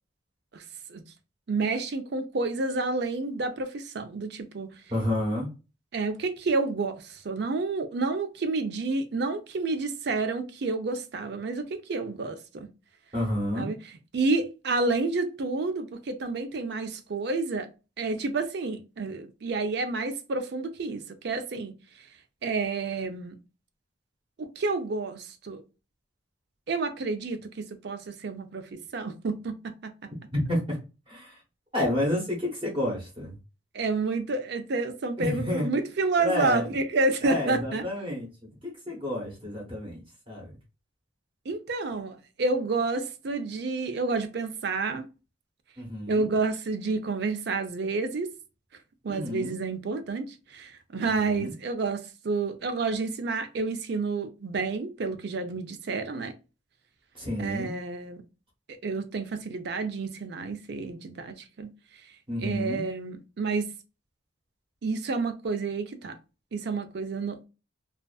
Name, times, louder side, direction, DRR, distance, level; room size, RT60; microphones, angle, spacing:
voice 1, 1.5-4.7 5.9-12.7 13.5-13.8 14.1-17.7 18.0-21.8 22.4-23.3 24.4-25.6 26.7-29.9 33.7-37.8 41.5-45.1 46.1-48.3 49.0-56.3 57.4-58.2 58.8-61.7 62.4-63.7 64.8-66.2 66.5-67.5, right 3 dB, 55° right, 0.4 m, -29 dB
voice 2, 4.9-5.5 13.1-13.7 30.3-30.8 31.1-31.4 31.7-33.4 35.2-35.7 36.2-36.7 37.2-38.3 38.6-40.0 40.3-40.5 45.8-46.3 49.1-49.6 51.0-51.5 57.1-57.7 62.3-62.8, left 1 dB, 25° right, 0.9 m, -30 dB
2.4 x 2.4 x 2.2 m
head